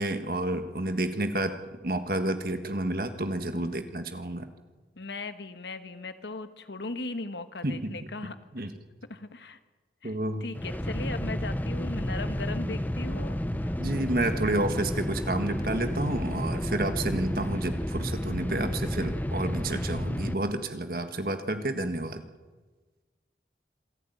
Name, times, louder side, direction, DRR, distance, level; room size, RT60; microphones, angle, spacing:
voice 1, 0.0-1.5 1.8-4.5 7.6-8.0 8.5-8.7 10.0-10.4 13.5-22.2, right 1 dB, 55° right, 8 dB, 1.6 m, -30 dB
voice 2, 5.0-8.7 9.0-9.6 10.0-13.7, left 3 dB, 85° left, 10 dB, 1.4 m, -38 dB
sound 1, 10.5-20.3, equal, 10° left, 0.6 m, -31 dB
26.5 x 11.5 x 9.3 m, 1.3 s
head